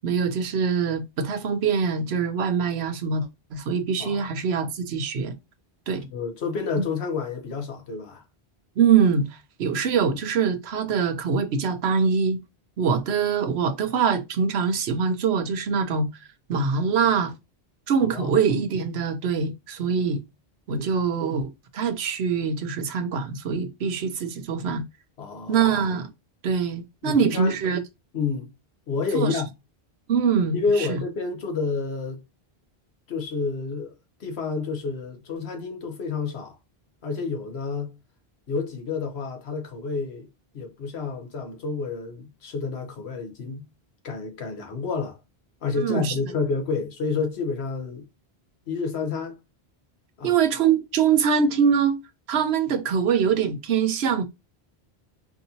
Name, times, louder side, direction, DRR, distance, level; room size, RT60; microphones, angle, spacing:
voice 1, 0.0-5.3 5.9-6.1 8.8-9.3 9.6-12.4 12.8-16.1 16.5-17.3 17.9-20.2 20.7-24.8 25.5-26.1 26.4-27.8 29.1-29.4 30.1-31.0 45.7-46.1 50.2-52.0 52.3-54.2, right 6 dB, 85° right, 0.9 m, -23 dB
voice 2, 4.0-4.5 6.1-8.2 18.0-18.4 20.7-20.9 25.2-25.7 27.0-27.6 28.1-28.5 28.9-29.5 30.5-32.2 33.1-36.6 37.0-38.0 38.5-40.3 40.5-43.7 44.0-45.2 45.6-48.1 48.7-49.4 50.2-50.4, left 4 dB, 85° left, 1.2 m, -29 dB
4.5 x 2.7 x 2.8 m
omnidirectional pair, 1.1 m